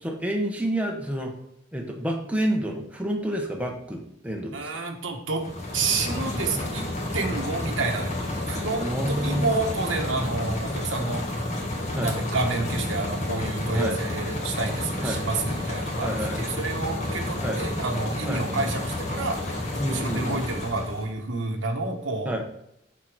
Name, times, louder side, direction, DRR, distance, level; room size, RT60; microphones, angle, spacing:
voice 1, 0.0-1.3 1.7-4.7 8.8-9.5 11.9-12.1 13.7-14.0 15.0-15.2 16.0-16.4 17.4-17.6 18.3-18.4 19.8-20.4 22.2-22.4, right 1 dB, 5° right, 1 dB, 1.0 m, -29 dB
voice 2, 4.5-5.4 5.7-6.8 7.1-8.1 8.5-11.6 12.0-19.6 19.9-22.4, right 3 dB, 90° right, 2 dB, 1.4 m, -29 dB
sound 1, 5.3-21.1, left 1 dB, 40° left, 1.6 m, -30 dB
6.7 x 4.5 x 6.1 m, 0.78 s
head